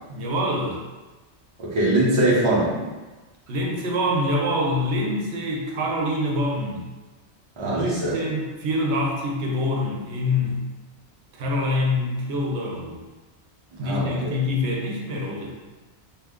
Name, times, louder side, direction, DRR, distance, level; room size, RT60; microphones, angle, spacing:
voice 1, 0.1-0.8 3.5-6.8 7.6-10.6 11.3-13.0 13.8-15.5, left 1 dB, 80° right, -1 dB, 0.9 m, -25 dB
voice 2, 1.6-2.8 7.6-8.1 13.7-14.3, right 1 dB, 30° right, -7 dB, 0.8 m, -22 dB
2.6 x 2.3 x 3.5 m, 1.2 s
omnidirectional pair, 1.1 m